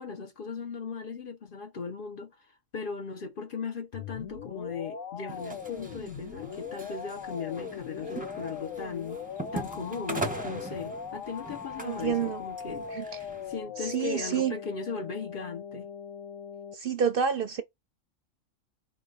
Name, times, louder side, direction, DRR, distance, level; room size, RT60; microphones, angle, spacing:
voice 1, 0.0-9.2 9.5-15.9, left 5 dB, 55° left, 0.7 m, -38 dB
sound 1, 3.9-16.8, left 6 dB, 90° left, 1.2 m, -40 dB
sound 2, 5.3-13.6, right 2 dB, 10° right, 0.8 m, -41 dB
voice 2, 11.8-12.4 12.9-13.0 13.8-14.5 16.7-17.6, right 7 dB, 55° right, 0.7 m, -28 dB
5.0 x 2.2 x 3.9 m
omnidirectional pair, 1.3 m